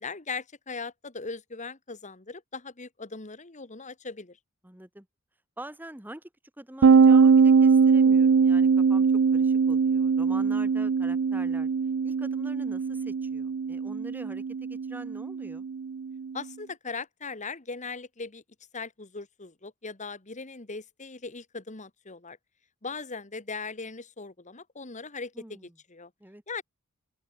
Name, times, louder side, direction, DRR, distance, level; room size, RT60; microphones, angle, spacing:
voice 1, 0.0-4.4 16.3-18.4 18.7-22.4 22.8-26.1 26.5-26.6, left 4 dB, 35° left, 1.7 m, -39 dB
voice 2, 4.6-5.1 5.6-6.3 6.6-9.1 9.3-11.7 12.0-15.6 25.3-25.7 26.2-26.4, right 1 dB, 10° right, 1.3 m, -44 dB
sound 1, 6.8-16.3, right 5 dB, 60° right, 0.4 m, -22 dB
open air
head